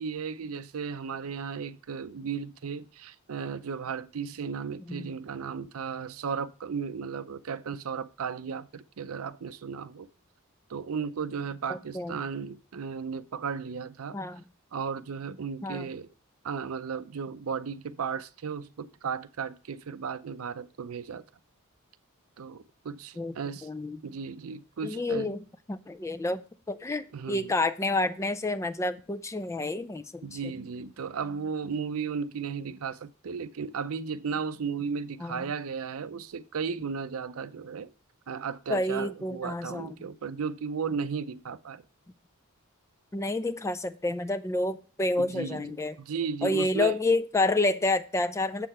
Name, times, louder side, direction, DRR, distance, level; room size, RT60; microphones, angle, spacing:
voice 1, 0.0-10.1 10.7-14.2 14.7-16.1 16.4-21.2 22.4-23.7 24.0-25.3 27.1-27.5 30.2-37.9 38.3-41.8 45.2-47.0, right 6 dB, 70° right, 0.5 m, -35 dB
voice 2, 11.7-12.2 14.1-14.4 15.6-15.9 23.2-23.3 23.6-24.0 24.8-25.4 25.7-26.4 26.7-30.5 35.2-35.5 38.7-40.1 43.1-45.9 46.4-48.7, left 2 dB, 15° left, 0.4 m, -29 dB
7.5 x 6.6 x 4.3 m
head